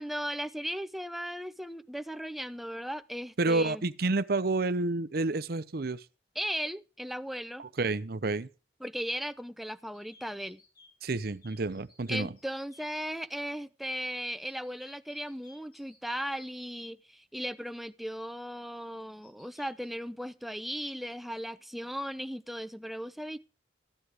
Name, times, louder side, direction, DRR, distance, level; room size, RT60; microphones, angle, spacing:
voice 1, 0.0-3.8 6.4-7.6 8.8-10.6 12.1-23.4, equal, ahead, 0.6 m, -37 dB
voice 2, 3.4-6.0 7.6-8.5 11.0-12.3, right 3 dB, 55° right, 0.7 m, -29 dB
sound 1, 9.9-13.3 14.4-16.9 19.2-19.9, left 2 dB, 55° left, 4.8 m, -59 dB
14.0 x 10.0 x 4.8 m
head